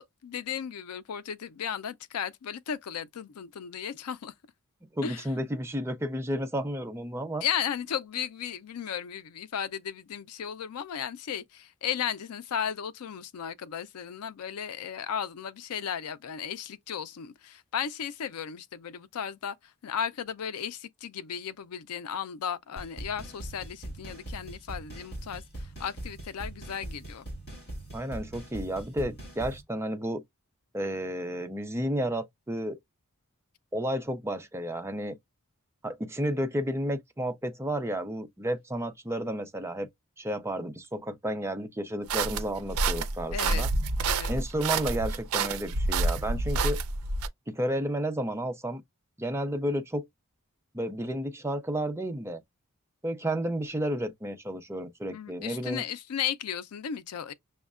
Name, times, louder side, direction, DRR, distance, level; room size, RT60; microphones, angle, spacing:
voice 1, 0.0-4.3 5.0-5.3 7.4-27.3 43.3-43.7 44.0-44.3 55.1-57.3, left 8 dB, 90° left, 0.4 m, -35 dB
voice 2, 4.9-7.4 27.9-30.2 30.7-32.8 33.7-35.2 35.8-39.9 40.2-43.7 44.3-46.8 47.5-48.8 49.2-50.0 50.7-52.4 53.0-55.8, right 1 dB, 10° right, 0.5 m, -32 dB
sound 1, 22.8-29.6, right 1 dB, 50° left, 1.9 m, -41 dB
sound 2, 42.1-47.3, right 3 dB, 75° right, 0.5 m, -28 dB
6.2 x 2.1 x 2.3 m
head